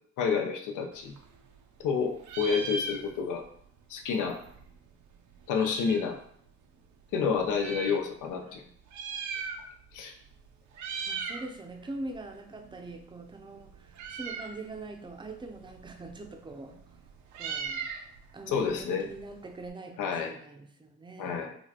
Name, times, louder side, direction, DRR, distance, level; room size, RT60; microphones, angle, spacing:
voice 1, 0.2-1.2 1.8-3.4 3.9-4.4 5.5-6.2 7.1-8.6 9.9-10.1 18.5-19.1 20.0-20.3 21.2-21.6, left 6 dB, 85° left, 4 dB, 0.6 m, -29 dB
Meow, 0.9-1.9 2.2-3.5 3.8-3.9 4.0-6.2 6.8-8.0 8.8-10.0 10.2-10.4 10.7-11.5 11.8-19.7, right 4 dB, 70° right, 0.6 m, -39 dB
voice 2, 11.1-16.8 17.3-17.9 18.3-21.5, right 2 dB, 15° right, 4 dB, 0.5 m, -43 dB
4.2 x 2.3 x 2.8 m, 0.65 s
cardioid pair, 90°, 30 cm